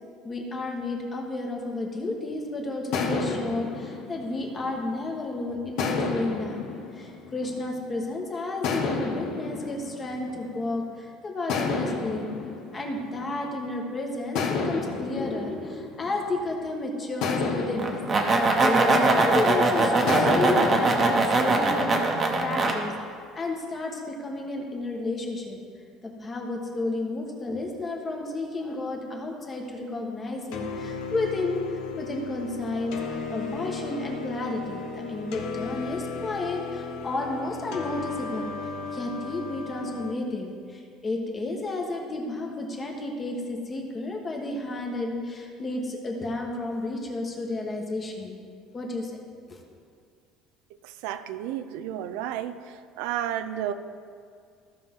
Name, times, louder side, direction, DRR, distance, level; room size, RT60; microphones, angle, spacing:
voice 1, 0.2-12.3 12.7-25.6 26.0-48.4 48.7-49.1 49.5-49.6, left 2 dB, 20° left, 1 dB, 1.3 m, -32 dB
sound 1, 2.9-5.2 5.8-8.0 8.6-10.9 11.5-13.7 14.3-16.6 17.2-19.5 20.1-21.9, left 4 dB, 60° left, 1.4 m, -32 dB
sound 2, 17.8-22.7, right 2 dB, 25° right, 1.0 m, -21 dB
sound 3, 30.5-40.1, left 4 dB, 80° left, 1.1 m, -35 dB
voice 2, 50.8-52.6 53.0-53.7, right 11 dB, 85° right, 11 dB, 0.5 m, -31 dB
15.0 x 5.9 x 3.7 m, 2.2 s
cardioid pair, 150°, 0 cm